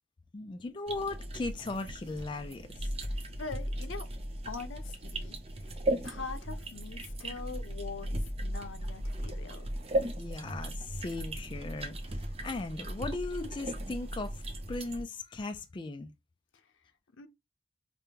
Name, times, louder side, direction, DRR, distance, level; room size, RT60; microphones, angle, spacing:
voice 1, 0.3-2.9 10.2-16.1, left 3 dB, 25° left, 0.3 m, -38 dB
sound 1, 0.9-15.0, right 1 dB, 30° right, 0.6 m, -37 dB
voice 2, 3.0-4.1 4.4-5.7 6.0-9.7 17.1-17.3, left 4 dB, 85° left, 0.6 m, -43 dB
5.2 x 2.2 x 2.8 m
head